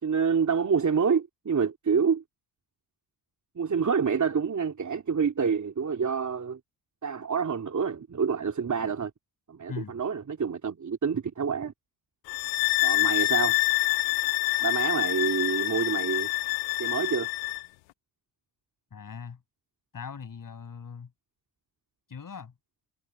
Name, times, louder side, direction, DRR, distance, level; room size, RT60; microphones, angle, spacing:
voice 1, 0.0-2.2 3.5-6.6 7.0-9.1 9.5-11.7 12.8-13.6 14.6-16.3 16.8-17.3, right 6 dB, 40° right, 3.0 m, -27 dB
sound 1, 12.3-17.7, left 25 dB, 85° left, 0.9 m, -26 dB
voice 2, 18.9-19.4 19.9-21.1 22.1-22.5, left 6 dB, 45° left, 7.0 m, -40 dB
supercardioid pair, 50°, 44 cm